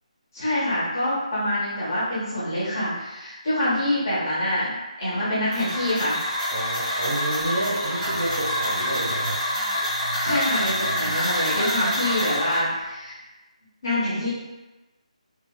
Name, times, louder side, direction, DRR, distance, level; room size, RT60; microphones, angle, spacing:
voice 1, 0.3-6.2 10.2-13.2 13.8-14.3, left 1 dB, 30° left, -9 dB, 1.0 m, -25 dB
sound 1, 5.5-12.6, equal, 15° right, 0.7 m, -27 dB
voice 2, 6.5-9.4, right 1 dB, 70° right, -6 dB, 1.2 m, -29 dB
sound 2, 7.4-12.9, right 2 dB, 50° right, 1.2 m, -38 dB
2.7 x 2.7 x 2.3 m, 1.0 s
figure-of-eight pair, 175°, 4 cm